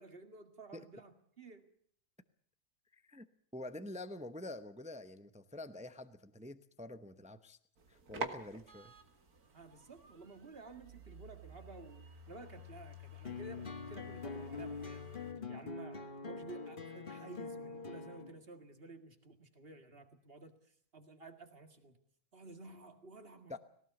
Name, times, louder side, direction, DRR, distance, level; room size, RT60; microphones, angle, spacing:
voice 1, 0.0-1.7 9.5-15.1 15.5-20.5 20.9-21.9 22.3-23.6, right 3 dB, 40° right, 7 dB, 2.2 m, -53 dB
voice 2, 2.9-3.3 3.5-7.6 7.9-8.9 23.5-23.6, left 1 dB, 10° right, 11 dB, 0.4 m, -47 dB
sound 1, 7.8-15.3, right 1 dB, 70° right, 2.3 m, -49 dB
sound 2, 13.2-18.3, left 4 dB, 35° left, 1.5 m, -44 dB
18.5 x 18.0 x 8.1 m, 0.62 s
omnidirectional pair, 1.6 m